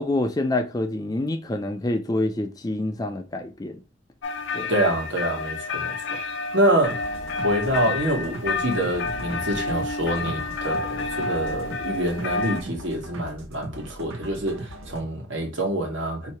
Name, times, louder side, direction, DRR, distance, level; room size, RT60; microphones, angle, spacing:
voice 1, 0.0-3.8 4.5-4.7, left 2 dB, 20° left, 0.4 m, -27 dB
sound 1, 4.2-12.6, left 3 dB, 70° left, 0.6 m, -30 dB
voice 2, 4.7-5.9 6.5-7.1 7.3-16.3, right 1 dB, 65° right, 1.3 m, -26 dB
sound 2, 6.8-15.0, right 1 dB, 85° right, 0.8 m, -39 dB
2.9 x 2.8 x 4.4 m
head